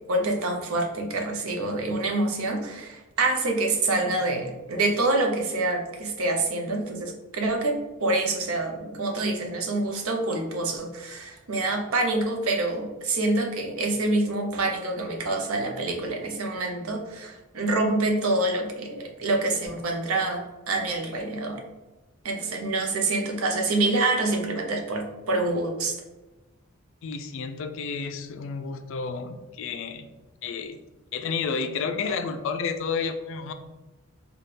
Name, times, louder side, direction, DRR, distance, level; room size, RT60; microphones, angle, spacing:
voice 1, 0.1-7.7 8.0-21.6 22.2-25.9, right 2 dB, 75° right, 2 dB, 0.7 m, -26 dB
voice 2, 27.0-30.1 30.4-30.8 31.1-33.5, left 5 dB, 60° left, 9 dB, 0.3 m, -31 dB
4.2 x 2.3 x 3.2 m, 1.1 s
head